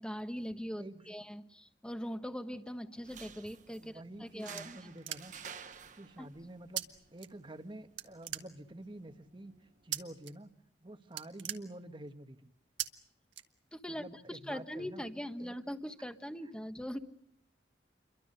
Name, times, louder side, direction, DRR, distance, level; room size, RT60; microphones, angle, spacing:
voice 1, 0.0-4.9 6.2-6.3 13.7-17.0, equal, 5° left, 8 dB, 1.3 m, -41 dB
sound 1, 3.0-10.0, right 7 dB, 45° right, 1.0 m, -53 dB
voice 2, 3.8-5.3 5.9-6.9 7.1-9.5 9.8-10.5 10.8-12.5 13.9-15.0 15.4-15.5, right 1 dB, 25° right, 9 dB, 1.2 m, -48 dB
sound 2, 4.0-5.6 6.8-6.9 7.2-7.7 8.0-8.9 9.9-10.3 10.6-10.8 11.1-12.2 12.8-12.9 13.3-14.0, right 12 dB, 90° right, 1.5 m, -40 dB
29.0 x 23.5 x 6.7 m, 0.69 s
head